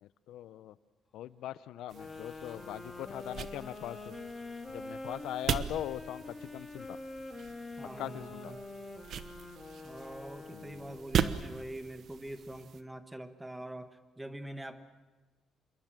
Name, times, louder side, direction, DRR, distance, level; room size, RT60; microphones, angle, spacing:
voice 1, 0.0-0.7 1.1-4.1 4.7-7.0 8.0-8.5 10.5-10.9, left 12 dB, 80° left, 17 dB, 0.7 m, -41 dB
sound 1, 1.9-11.1, left 2 dB, 20° left, 2.3 m, -45 dB
sound 2, 1.9-12.8, right 8 dB, 50° right, 1.1 m, -39 dB
voice 2, 7.8-8.6 9.8-14.8, right 1 dB, 5° right, 9 dB, 1.4 m, -44 dB
27.0 x 22.5 x 7.6 m, 1.2 s
cardioid pair, 170°, 0 cm